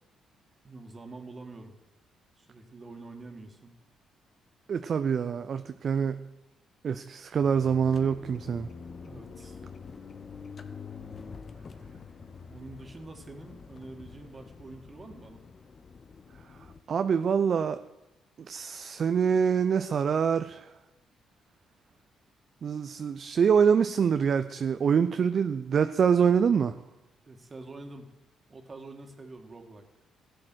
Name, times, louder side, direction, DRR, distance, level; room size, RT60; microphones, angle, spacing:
voice 1, 0.6-1.8 2.4-3.8 9.0-9.6 12.5-15.4 27.2-28.1 28.5-29.9, right 2 dB, 35° right, 2.1 m, -46 dB
voice 2, 4.7-6.2 6.8-8.7 16.9-17.8 18.5-20.6 22.6-26.7, right 7 dB, 55° right, 0.5 m, -25 dB
sound 1, 7.4-16.8, left 5 dB, 50° left, 1.0 m, -46 dB
14.0 x 8.6 x 6.3 m
hypercardioid pair, 50°, 0 cm